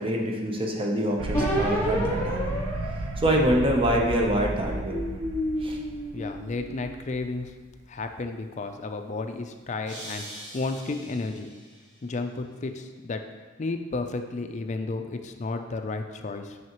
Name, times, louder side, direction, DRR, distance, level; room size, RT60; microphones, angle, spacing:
voice 1, 0.0-2.5 3.2-5.0 5.6-5.8, equal, 25° right, 0 dB, 0.7 m, -25 dB
sound 1, 1.2-7.7, right 2 dB, 85° right, 0.4 m, -34 dB
sound 2, 1.3-4.0 4.6-7.1, equal, 15° left, 1.7 m, -31 dB
voice 2, 6.1-7.5 7.9-11.5 12.0-13.2 13.6-16.6, left 3 dB, 35° left, 6 dB, 0.4 m, -32 dB
sound 3, 9.9-11.9, right 1 dB, 60° right, 1.5 m, -43 dB
6.1 x 5.6 x 3.0 m, 1.4 s
head